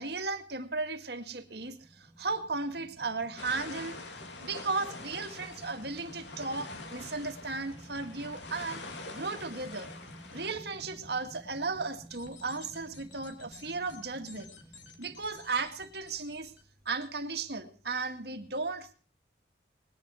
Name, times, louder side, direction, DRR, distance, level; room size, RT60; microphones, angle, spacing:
voice 1, 0.0-4.0 4.4-8.8 9.1-9.9 10.3-14.5 15.0-16.5 16.9-18.9, right 3 dB, 60° right, 7 dB, 1.9 m, -35 dB
sound 1, 1.3-16.5, equal, 10° right, 4.3 m, -52 dB
sound 2, 3.4-10.5, left 3 dB, 75° left, 2.7 m, -45 dB
sound 3, 12.1-17.1, left 5 dB, 90° left, 3.3 m, -55 dB
20.0 x 11.0 x 6.2 m, 0.40 s
head